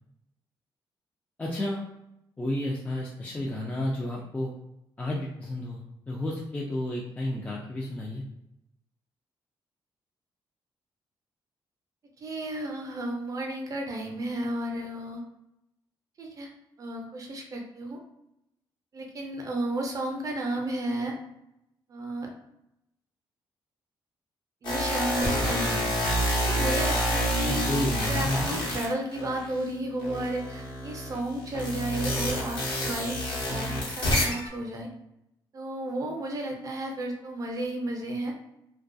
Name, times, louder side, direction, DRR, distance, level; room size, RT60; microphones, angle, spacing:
voice 1, 1.4-1.8 2.4-4.5 5.0-8.2 27.5-28.5, left 1 dB, 15° left, -4 dB, 0.4 m, -31 dB
voice 2, 12.2-15.2 16.2-16.5 16.8-18.0 18.9-21.2 21.9-22.3 24.6-25.8 26.5-27.8 28.1-34.9 35.5-38.3, right 1 dB, 40° right, 1 dB, 0.6 m, -33 dB
sound 1, 24.6-29.6 30.0-34.5, equal, 60° left, 0.9 m, -28 dB
2.3 x 2.2 x 2.5 m, 0.84 s
cardioid pair, 105°, 9 cm